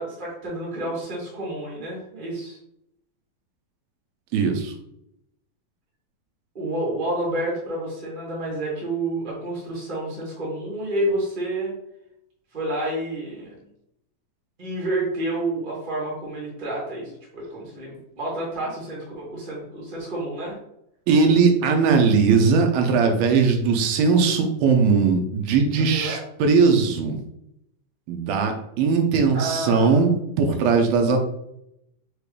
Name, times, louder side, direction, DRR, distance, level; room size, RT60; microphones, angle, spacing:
voice 1, 0.0-2.6 6.5-11.7 12.5-13.5 14.6-20.6 25.8-26.2 29.3-30.0, right 1 dB, 60° right, -4 dB, 0.5 m, -29 dB
voice 2, 4.3-4.7 21.1-27.2 28.1-31.2, right 5 dB, 85° right, 4 dB, 2.5 m, -19 dB
6.2 x 2.5 x 3.2 m, 0.78 s
omnidirectional pair, 4.1 m